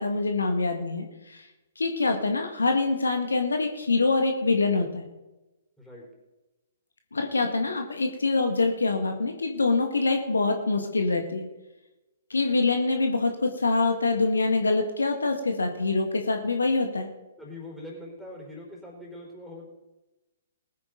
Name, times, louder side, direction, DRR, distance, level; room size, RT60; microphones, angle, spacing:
voice 1, 0.0-1.5 1.8-5.0 7.1-11.4 12.3-17.1, left 3 dB, 70° left, 4 dB, 1.7 m, -25 dB
voice 2, 17.4-19.7, left 1 dB, ahead, -3 dB, 4.2 m, -42 dB
20.0 x 9.5 x 3.9 m, 1.0 s
figure-of-eight pair, 120°, 0 cm